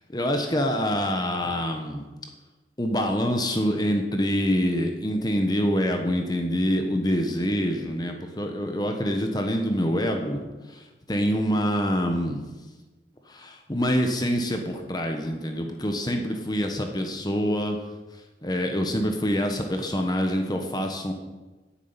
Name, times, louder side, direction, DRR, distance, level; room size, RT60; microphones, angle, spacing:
voice 1, 0.1-2.0 2.8-10.4 10.7-12.4 13.3-17.8 18.4-21.1, equal, 20° left, 4 dB, 1.2 m, -26 dB
9.9 x 7.3 x 9.0 m, 1.2 s
head